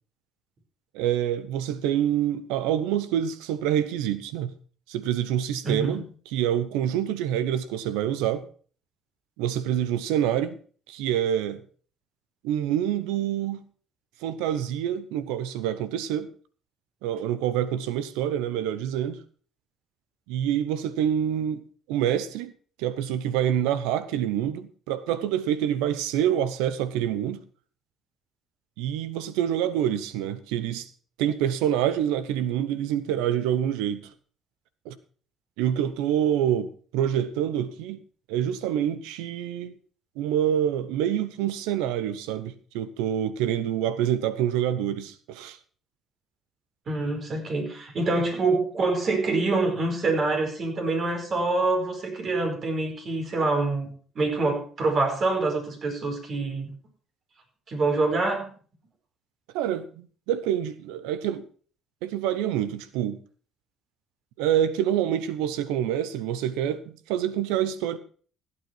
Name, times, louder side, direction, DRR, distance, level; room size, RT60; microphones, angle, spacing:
voice 1, 0.9-4.5 4.9-8.5 9.4-10.6 10.9-11.6 12.4-13.6 14.2-16.3 17.0-19.2 20.3-22.5 22.8-27.4 28.8-30.9 31.2-34.1 34.8-35.0 35.6-38.0 38.3-39.7 40.2-45.6 59.5-61.5 62.0-63.2 64.4-68.0, right 10 dB, 90° right, 0.9 m, -26 dB
voice 2, 5.6-6.0 46.9-56.7 57.7-58.5, right 3 dB, 50° right, 4.9 m, -26 dB
16.0 x 8.8 x 4.6 m
supercardioid pair, 75°, 0 cm